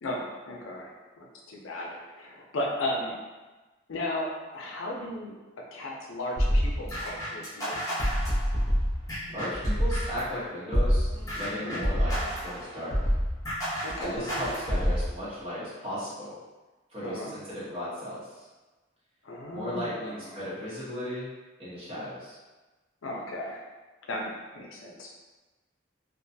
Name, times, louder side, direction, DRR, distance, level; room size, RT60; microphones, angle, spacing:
voice 1, 0.0-3.2 3.9-5.3 5.7-8.1 11.5-11.8 13.8-14.2 17.0-17.3 19.2-20.2 23.0-23.6 24.1-25.1, left 1 dB, 85° left, -1 dB, 0.5 m, -35 dB
sound 1, 6.4-10.3 10.7-15.1, equal, 15° left, 0.7 m, -27 dB
voice 2, 9.3-11.1 11.4-12.9 14.0-16.3 16.9-18.2 19.5-21.3 21.6-22.4, equal, 30° right, -10 dB, 0.9 m, -36 dB
2.4 x 2.2 x 2.6 m, 1.2 s
head